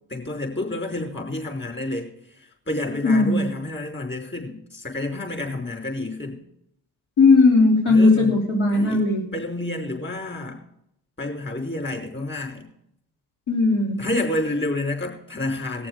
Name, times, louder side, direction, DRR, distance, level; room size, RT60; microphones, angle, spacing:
voice 1, 0.1-6.4 7.9-8.4 8.7-10.6 11.2-12.7 14.0-15.9, left 2 dB, 25° left, 1 dB, 5.4 m, -29 dB
voice 2, 3.0-3.5 7.2-9.2 13.5-14.0, left 3 dB, 75° left, -2 dB, 3.0 m, -17 dB
19.5 x 7.0 x 5.1 m, 0.75 s
hypercardioid pair, 55°, 46 cm